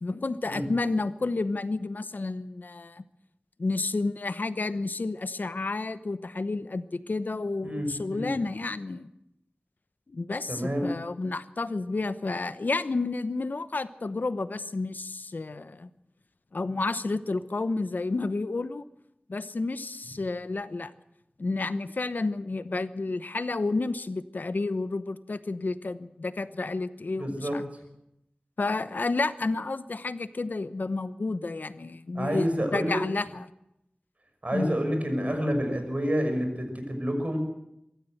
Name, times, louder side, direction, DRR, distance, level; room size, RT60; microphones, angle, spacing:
voice 1, 0.0-3.0 3.6-9.1 10.1-15.9 16.5-18.9 19.3-20.9 21.4-27.6 28.6-33.4 34.5-34.8, left 3 dB, 75° left, 13 dB, 0.9 m, -31 dB
voice 2, 7.6-8.3 10.5-10.9 27.2-27.5 32.1-33.0 34.4-37.4, equal, 50° right, 5 dB, 5.8 m, -28 dB
24.5 x 14.0 x 7.9 m, 0.83 s
wide cardioid pair, 55°, 3 cm